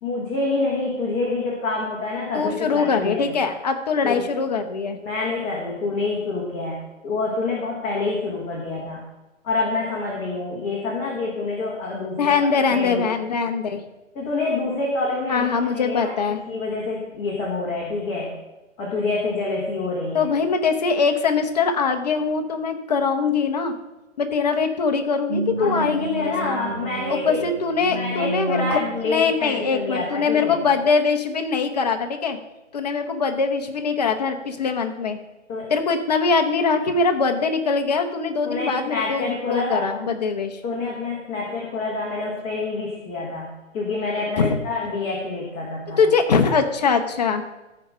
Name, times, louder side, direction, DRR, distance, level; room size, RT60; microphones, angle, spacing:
voice 1, 0.0-3.3 4.0-4.3 5.0-9.0 9.4-12.3 12.7-13.0 14.1-16.1 16.5-18.3 18.8-20.3 25.6-27.4 27.9-30.6 35.5-35.7 38.4-40.1 40.6-46.0, left 3 dB, 15° left, -5 dB, 1.4 m, -27 dB
voice 2, 2.3-5.0 12.2-13.8 15.3-16.4 20.1-23.7 24.2-26.6 27.1-28.8 29.0-32.4 32.7-35.2 35.7-40.6 44.4-44.5 46.0-47.4, left 5 dB, 30° left, 6 dB, 0.9 m, -22 dB
sound 1, 25.3-29.3 29.8-30.0, right 2 dB, 50° right, 1.6 m, -31 dB
14.0 x 5.1 x 5.5 m, 1.0 s
figure-of-eight pair, 140°, 39 cm